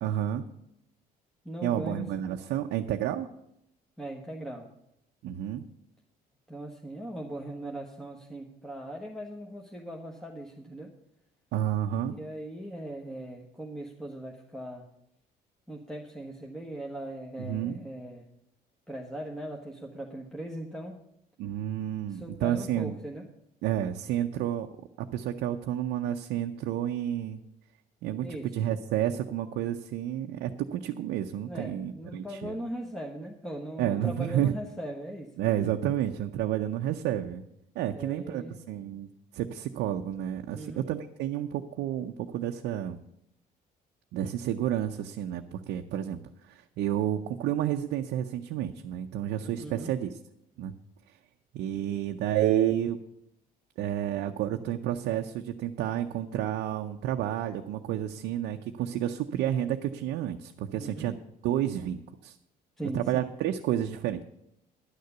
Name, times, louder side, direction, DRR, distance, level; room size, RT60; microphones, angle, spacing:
voice 1, 0.0-0.5 1.6-3.3 5.2-5.7 11.5-12.2 17.4-17.8 21.4-22.9 23.6-24.7 25.0-27.4 28.0-32.6 33.8-34.5 35.4-37.4 37.8-39.1 39.3-43.0 44.1-46.2 46.4-50.1 50.6-50.7 51.5-53.0 53.8-61.2 61.4-62.4 62.9-64.2, right 11 dB, 80° right, 4 dB, 0.6 m, -30 dB
voice 2, 1.4-2.1 4.0-4.7 6.5-10.9 12.0-14.8 15.7-18.2 18.9-21.0 22.1-23.2 28.2-28.5 31.4-35.3 37.9-38.6 40.5-40.8 49.6-49.9 60.7-61.1 62.8-63.3, right 1 dB, ahead, -2 dB, 1.3 m, -39 dB
11.0 x 6.6 x 8.0 m, 0.79 s
cardioid pair, 110°, 17 cm